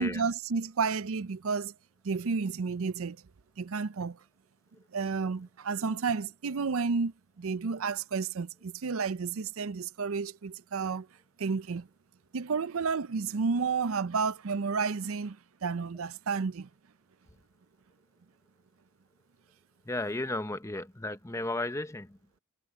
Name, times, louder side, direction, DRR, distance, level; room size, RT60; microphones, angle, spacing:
voice 1, 0.0-1.7 2.0-3.2 3.6-4.2 4.9-11.1 11.4-11.9 12.3-16.7, right 5 dB, 70° right, 0.5 m, -31 dB
voice 2, 19.8-22.2, left 2 dB, 15° left, 1.0 m, -34 dB
head